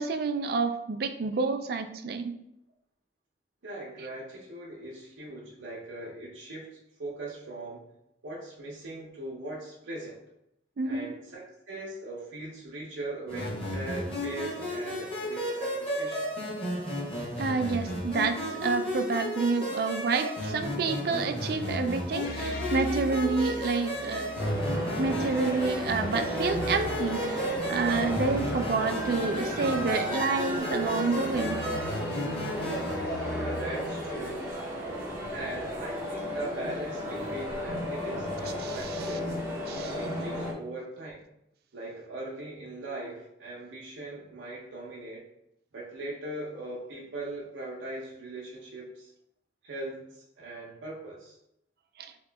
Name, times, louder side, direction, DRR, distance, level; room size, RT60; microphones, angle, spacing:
voice 1, 0.0-2.3 10.8-11.1 17.4-24.3 25.0-31.6 38.6-39.2 39.7-40.0 52.0-52.1, right 4 dB, 55° right, 8 dB, 0.3 m, -29 dB
voice 2, 3.6-7.9 8.2-10.2 10.8-16.3 33.4-34.4 35.3-39.3 39.9-41.2 41.7-45.2 45.7-49.1 49.6-51.4, right 2 dB, 90° right, -4 dB, 0.8 m, -40 dB
sound 1, 13.3-33.0, equal, 30° left, 1.1 m, -34 dB
sound 2, 22.2-34.7, left 2 dB, 50° left, 0.4 m, -40 dB
sound 3, 24.4-40.5, equal, 15° right, 0.7 m, -34 dB
2.9 x 2.9 x 3.4 m, 0.78 s
head